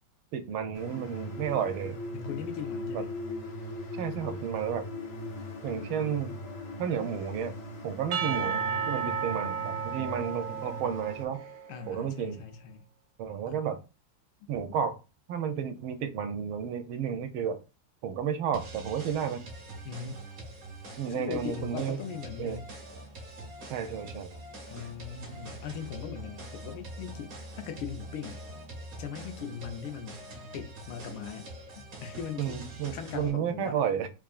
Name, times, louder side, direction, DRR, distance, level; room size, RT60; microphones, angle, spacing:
voice 1, 0.3-1.9 2.9-3.0 4.0-4.9 5.6-6.3 6.8-7.5 7.8-8.6 8.9-11.4 11.9-12.4 13.2-13.8 14.5-15.0 15.3-17.6 18.0-19.4 21.0-22.0 22.4-22.6 23.7-24.3 32.4-34.1, right 8 dB, 90° right, 1.4 m, -32 dB
sound 1, 0.7-11.3, left 1 dB, 60° left, 1.3 m, -40 dB
voice 2, 2.1-3.2 8.3-9.2 11.7-12.9 13.5-13.6 19.8-20.2 21.1-22.7 24.7-28.4 29.0-30.3 30.5-31.5 32.0-32.6 32.9-33.8, left 7 dB, 85° left, 1.5 m, -40 dB
Percussion / Church bell, 8.1-11.8, right 7 dB, 70° right, 1.0 m, -33 dB
sound 2, 18.5-33.3, right 1 dB, 50° right, 1.3 m, -44 dB
3.5 x 3.5 x 2.4 m
omnidirectional pair, 2.2 m